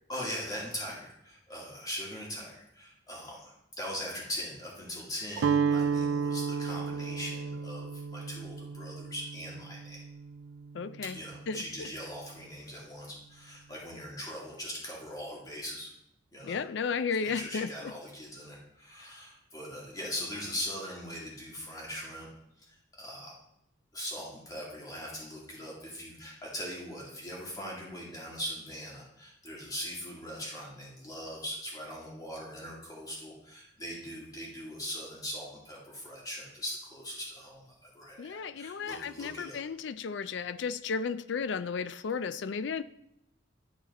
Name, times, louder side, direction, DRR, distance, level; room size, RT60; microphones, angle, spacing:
voice 1, 0.1-10.0 11.1-15.9 16.3-16.6 17.2-22.3 22.6-23.4 23.9-39.6, equal, 20° left, -4 dB, 2.3 m, -41 dB
Guitar, 5.4-11.4, right 6 dB, 80° right, 0.3 m, -32 dB
voice 2, 10.7-11.2 11.5-11.9 16.4-17.9 38.2-42.8, left 5 dB, 65° left, 15 dB, 0.4 m, -34 dB
11.0 x 4.4 x 4.1 m, 0.80 s
head